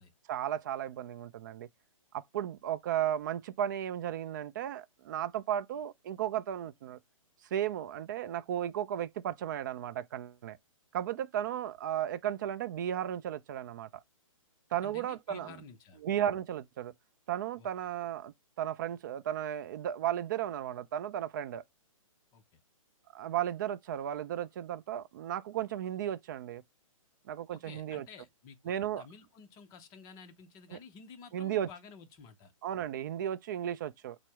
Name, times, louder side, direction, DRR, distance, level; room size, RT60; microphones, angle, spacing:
voice 1, 0.3-1.7 2.1-7.0 7.5-10.6 10.9-13.9 14.7-15.5 16.0-16.9 17.3-21.6 23.1-26.6 27.3-28.1 28.6-29.0 30.7-30.8 31.3-31.7 32.6-34.2, right 10 dB, 35° right, 0.4 m, -34 dB
voice 2, 14.8-16.0 17.6-17.7 22.3-22.6 27.5-32.5, left 5 dB, 20° left, 0.6 m, -52 dB
6.0 x 2.0 x 3.4 m
hypercardioid pair, 145°, 18 cm